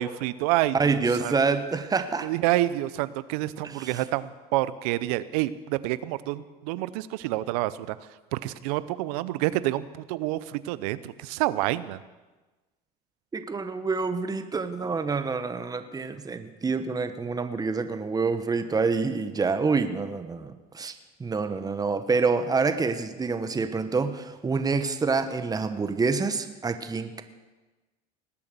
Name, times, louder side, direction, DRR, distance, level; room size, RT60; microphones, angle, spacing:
voice 1, 0.0-1.3 2.2-8.0 8.3-12.0, right 16 dB, 75° right, 16 dB, 0.7 m, -28 dB
voice 2, 0.7-2.3 3.8-3.9 13.3-20.9 21.2-27.2, right 4 dB, 20° right, 9 dB, 1.2 m, -27 dB
19.5 x 8.6 x 6.9 m, 1.2 s
supercardioid pair, 90°, 20 cm